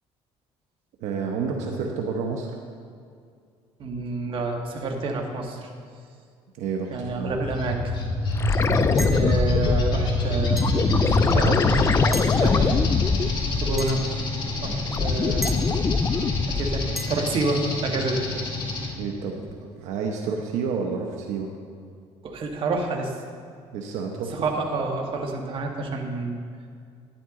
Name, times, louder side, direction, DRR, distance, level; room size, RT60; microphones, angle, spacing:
voice 1, 1.0-2.6 6.6-7.4 19.0-19.5 19.8-21.5 23.7-24.5, right 5 dB, 75° right, 2 dB, 1.0 m, -29 dB
voice 2, 3.8-5.7 6.9-7.9 9.1-10.7 11.3-12.9 13.6-14.0 14.6-15.6 16.5-18.3 22.2-23.1 24.4-26.4, right 3 dB, 45° right, 2 dB, 1.6 m, -28 dB
sound 1, 7.0-18.9, left 1 dB, 40° left, 2.0 m, -27 dB
sound 2, 8.4-14.2 14.5-17.1 19.5-19.6, left 4 dB, 25° left, 0.4 m, -23 dB
sound 3, 9.0-9.3 10.6-10.8 12.1-12.4 13.8-14.0 15.4-15.6 17.0-17.1, equal, ahead, 0.8 m, -34 dB
11.5 x 10.0 x 3.8 m, 2.2 s
cardioid pair, 115°, 12 cm